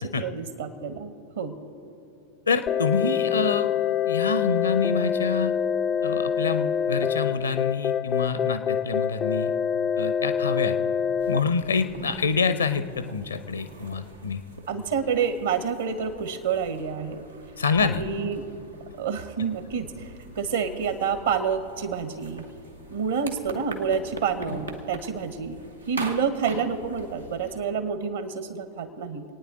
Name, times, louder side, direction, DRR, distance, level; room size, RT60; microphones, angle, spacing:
voice 1, 0.0-1.5 14.7-17.3 17.8-18.5 18.9-20.1 20.3-22.4 22.9-25.6 25.9-29.2, right 6 dB, 65° right, 9 dB, 1.3 m, -28 dB
voice 2, 2.5-3.7 4.1-5.5 6.0-9.5 10.0-10.8 11.3-14.4 17.6-18.0, left 5 dB, 75° left, 11 dB, 0.7 m, -26 dB
sound 1, 2.7-11.4, left 8 dB, 25° left, 0.3 m, -26 dB
sound 2, 11.2-27.6, right 2 dB, 85° right, 1.3 m, -43 dB
26.5 x 9.5 x 3.9 m, 2.9 s
figure-of-eight pair, 90°, 0 cm